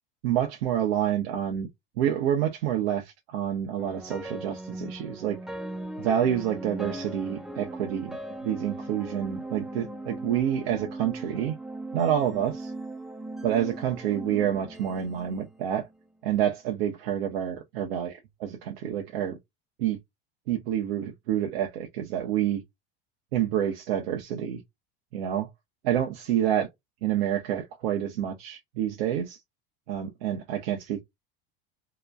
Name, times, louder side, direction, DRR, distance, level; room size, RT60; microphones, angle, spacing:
voice 1, 0.2-1.7 2.0-5.4 6.0-8.1 8.4-11.5 11.9-12.7 13.4-15.9 16.2-19.4 19.8-20.0 20.5-22.6 23.3-24.6 25.1-25.5 25.8-26.7 27.0-29.4 29.9-31.0, right 10 dB, 80° right, 0.7 m, -28 dB
sound 1, 3.8-16.1, right 2 dB, ahead, 0.3 m, -39 dB
2.9 x 2.2 x 2.3 m
supercardioid pair, 110°, 29 cm